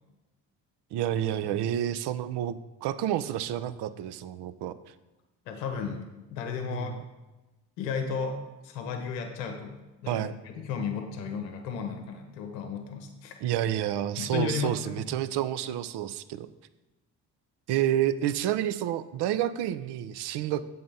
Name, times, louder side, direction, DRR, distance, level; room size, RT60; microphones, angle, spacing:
voice 1, 0.9-4.7 6.6-7.0 10.1-10.3 13.4-16.5 17.7-20.6, right 11 dB, 60° right, 14 dB, 0.6 m, -29 dB
voice 2, 5.5-6.9 7.8-8.4 8.6-9.8 10.0-13.3 14.2-15.1, left 6 dB, 90° left, 4 dB, 0.8 m, -34 dB
7.6 x 3.9 x 5.5 m, 1.1 s
hypercardioid pair, 55°, 47 cm